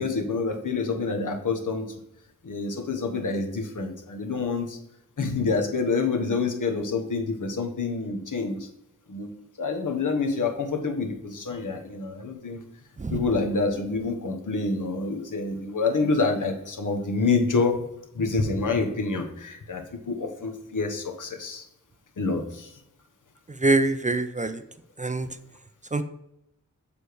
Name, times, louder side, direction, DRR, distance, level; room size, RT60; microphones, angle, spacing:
voice 1, 0.0-1.9 2.4-4.8 5.2-8.7 9.1-9.3 9.6-12.6 13.1-17.8 18.1-21.6 22.2-22.7, left 4 dB, 75° left, 3 dB, 1.0 m, -27 dB
voice 2, 23.6-24.6 25.0-25.3 25.9-26.0, right 2 dB, 25° right, 10 dB, 0.4 m, -24 dB
6.9 x 3.4 x 4.6 m, 0.81 s
wide cardioid pair, 60°, 32 cm